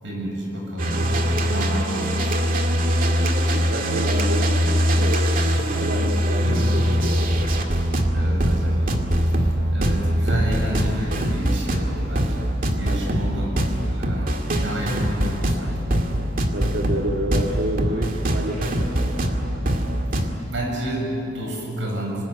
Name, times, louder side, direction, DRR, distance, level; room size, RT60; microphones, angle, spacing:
voice 1, 0.0-2.5 5.6-5.8 6.4-6.7 8.1-12.4 12.7-13.6 13.8-16.3 20.1-22.2, right 1 dB, 90° right, 0 dB, 7.6 m, -31 dB
sound 1, 0.8-20.3, equal, 50° right, 2.1 m, -22 dB
voice 2, 2.9-5.4 5.8-7.5 12.9-13.3 16.5-19.2, right 1 dB, 70° right, 0 dB, 1.9 m, -30 dB
26.5 x 20.0 x 9.5 m, 3.0 s
head